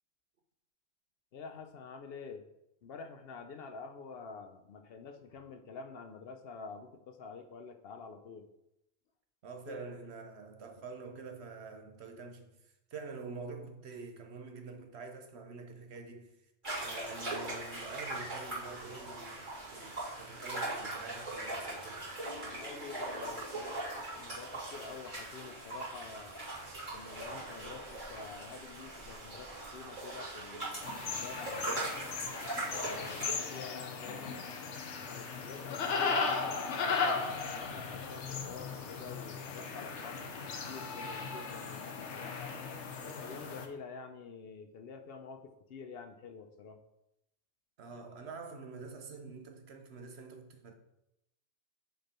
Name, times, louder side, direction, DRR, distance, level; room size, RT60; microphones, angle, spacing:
voice 1, 1.3-2.4 2.8-8.5 9.7-9.8 22.4-26.3 26.9-31.9 32.7-34.4 35.0-40.3 40.6-42.5 43.0-46.8, left 5 dB, 65° left, 0.8 m, -48 dB
voice 2, 9.4-16.3 16.8-22.1 38.4-38.5 47.8-50.7, right 4 dB, 70° right, 1.1 m, -47 dB
sound 1, 16.6-33.3, right 2 dB, 45° right, 2.9 m, -40 dB
sound 2, 22.2-25.0, left 3 dB, 40° left, 1.2 m, -52 dB
sound 3, 30.8-43.7, left 5 dB, 85° left, 1.1 m, -37 dB
6.7 x 4.4 x 4.2 m
omnidirectional pair, 1.2 m